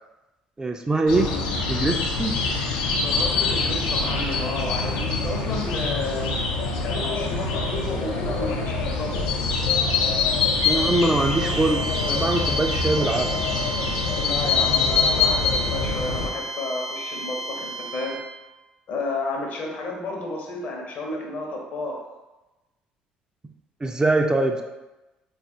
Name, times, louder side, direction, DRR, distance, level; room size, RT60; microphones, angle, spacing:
voice 1, 0.6-1.3 1.7-2.3 10.6-13.3 23.8-24.6, right 2 dB, 20° right, 3 dB, 0.3 m, -23 dB
sound 1, 1.1-16.3, left 4 dB, 75° left, 0.4 m, -24 dB
voice 2, 3.0-6.4 6.8-9.3 14.1-18.2 18.9-22.0, left 2 dB, 55° left, 0 dB, 0.8 m, -31 dB
sound 2, 10.6-18.3, right 1 dB, 65° right, 0.5 m, -32 dB
4.2 x 2.4 x 2.7 m, 1.1 s
figure-of-eight pair, 55°, 4 cm